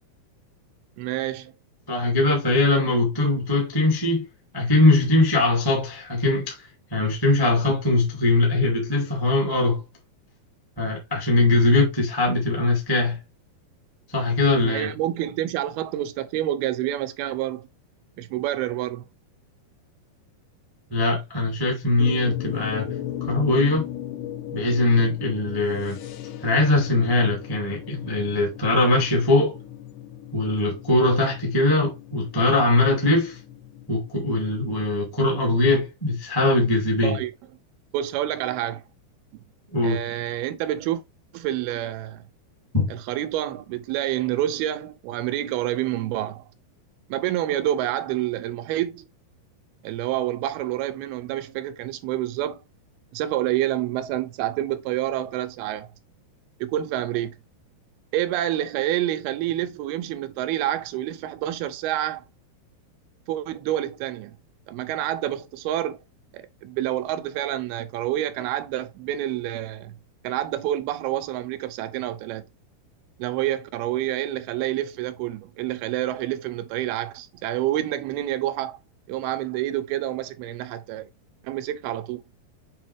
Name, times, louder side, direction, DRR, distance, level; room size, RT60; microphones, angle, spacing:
voice 1, 1.0-1.5 14.6-17.7 18.2-19.1 37.0-37.3 37.9-38.8 39.8-41.0 41.3-42.3 42.9-46.4 47.1-49.1 49.8-52.6 53.1-55.9 56.6-57.4 58.1-62.2 63.3-64.3 64.7-66.0 66.3-70.0 70.2-72.4 73.2-78.8 79.1-81.1 81.4-82.2, right 13 dB, 85° right, 2.6 m, -28 dB
voice 2, 1.9-4.2 4.5-9.8 10.8-13.2 14.1-14.9 20.9-22.9 23.2-23.9 24.5-26.0 26.4-29.5 30.3-33.4 33.9-37.2 39.7-40.0 42.7-42.9, left 2 dB, 10° left, 1.5 m, -21 dB
sound 1, 22.0-35.3, left 11 dB, 75° left, 2.0 m, -37 dB
7.2 x 4.7 x 3.3 m
omnidirectional pair, 4.4 m